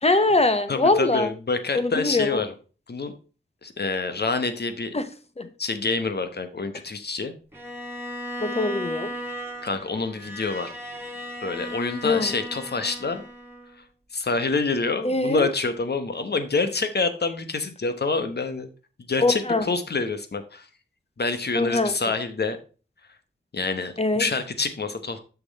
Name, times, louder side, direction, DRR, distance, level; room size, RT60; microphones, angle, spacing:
voice 1, 0.0-1.3 1.7-2.4 4.9-5.0 5.4-5.5 8.4-9.1 12.0-12.3 15.0-15.5 19.2-19.6 21.5-21.9 24.0-24.3, left 2 dB, 30° left, 1.0 m, -22 dB
voice 2, 0.7-2.5 2.9-3.1 3.6-4.9 5.6-7.3 9.6-10.7 11.4-13.3 14.1-18.7 19.1-20.7 21.2-22.6 23.5-25.2, left 3 dB, 55° left, 1.1 m, -27 dB
Bowed string instrument, 7.5-13.8, equal, 10° right, 1.9 m, -36 dB
6.8 x 6.1 x 4.1 m
wide cardioid pair, 65°, 20 cm